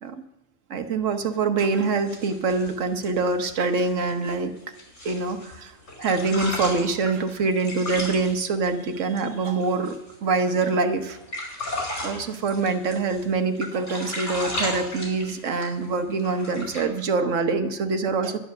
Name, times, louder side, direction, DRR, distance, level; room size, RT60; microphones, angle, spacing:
voice 1, 0.7-4.5 5.0-5.7 6.0-10.0 10.2-11.2 12.0-18.4, right 4 dB, 85° right, 7 dB, 1.4 m, -25 dB
sound 1, 1.8-5.6 5.9-10.2 10.5-10.6 11.0-13.3 13.5-15.9 16.2-16.8, left 1 dB, 75° left, 4.7 m, -35 dB
11.5 x 10.5 x 6.6 m, 0.94 s
omnidirectional pair, 1.3 m